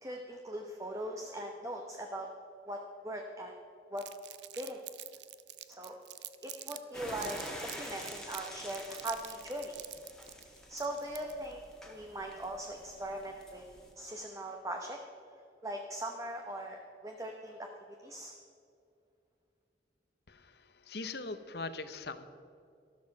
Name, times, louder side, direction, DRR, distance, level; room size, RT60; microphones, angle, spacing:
voice 1, 0.0-2.3 2.6-3.6 3.9-4.0 4.6-4.8 5.7-6.0 6.4-7.4 7.8-9.8 10.7-13.7 14.0-15.0 15.6-17.7 18.0-18.3, right 1 dB, 15° right, 2 dB, 0.9 m, -40 dB
Crumpling crinkling, 4.0-6.8 7.1-11.5, right 14 dB, 75° right, 0.6 m, -46 dB
sound 1, 6.9-13.9, equal, 5° left, 1.7 m, -47 dB
voice 2, 20.3-22.3, left 3 dB, 60° left, 11 dB, 0.9 m, -41 dB
13.5 x 12.5 x 5.3 m, 2.5 s
head